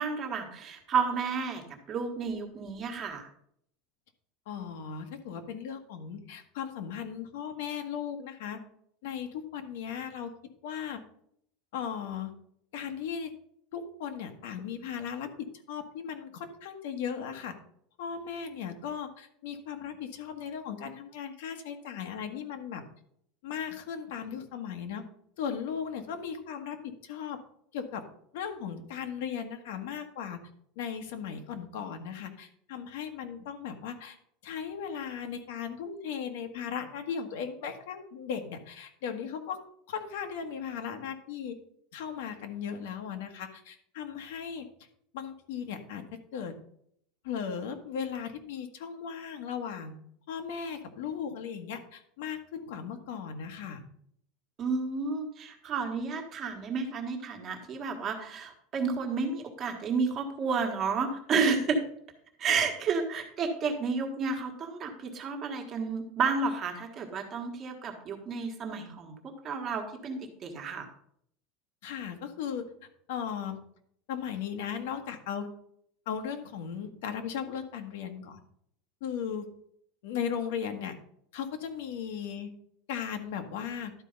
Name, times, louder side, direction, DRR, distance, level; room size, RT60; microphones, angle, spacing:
voice 1, 0.0-1.6 1.9-3.3 54.6-61.8 62.4-69.1 69.4-70.9, right 5 dB, 25° right, 3 dB, 1.4 m, -31 dB
voice 2, 4.5-8.6 9.0-10.3 10.6-11.0 11.7-12.3 12.7-13.3 13.7-17.6 18.0-22.8 23.4-25.1 25.4-27.4 27.7-28.0 28.3-30.4 30.7-34.2 34.4-39.6 39.9-41.6 41.9-44.7 45.1-46.0 46.3-46.5 47.2-49.9 50.3-53.8 61.4-61.5 71.8-72.7 73.1-73.6 74.1-75.5 76.0-78.4 79.0-79.5 80.0-81.0 81.3-82.5 82.9-83.9, left 7 dB, 75° left, 6 dB, 1.3 m, -37 dB
11.5 x 4.6 x 5.3 m, 0.68 s
supercardioid pair, 175°, 0 cm